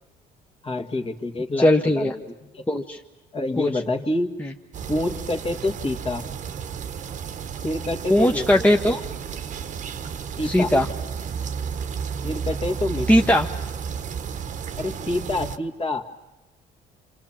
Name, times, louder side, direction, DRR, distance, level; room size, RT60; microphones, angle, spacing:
voice 1, 0.6-2.7 3.3-4.4 4.9-6.3 7.6-8.7 10.4-10.7 12.2-13.1 14.8-16.1, left 2 dB, 30° left, 5 dB, 2.0 m, -27 dB
voice 2, 1.6-2.1 2.7-3.0 3.6-3.7 4.4-4.5 8.1-9.0 10.4-10.9 13.1-13.5, left 1 dB, 10° left, 2 dB, 1.1 m, -19 dB
sound 1, 4.7-15.6, right 7 dB, 45° right, 1.2 m, -32 dB
28.0 x 26.5 x 7.5 m, 1.0 s
cardioid pair, 110°, 17 cm